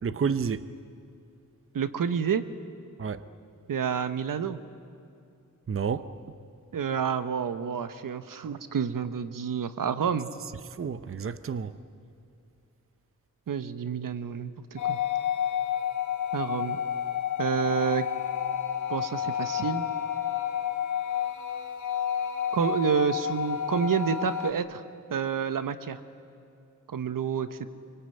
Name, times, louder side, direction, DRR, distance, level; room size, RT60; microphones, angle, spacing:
voice 1, 0.0-0.6 3.0-3.2 5.7-6.1 10.8-11.7, right 6 dB, 40° right, 0.8 m, -30 dB
voice 2, 1.7-2.4 3.7-4.6 6.7-10.3 13.5-15.0 16.3-16.8 17.4-18.1 18.9-19.9 22.5-24.8 25.1-26.0 26.9-27.7, right 7 dB, 90° right, 1.2 m, -29 dB
sound 1, 14.8-24.5, left 9 dB, 65° left, 1.6 m, -30 dB
25.0 x 25.0 x 9.3 m
wide cardioid pair, 130°, 32 cm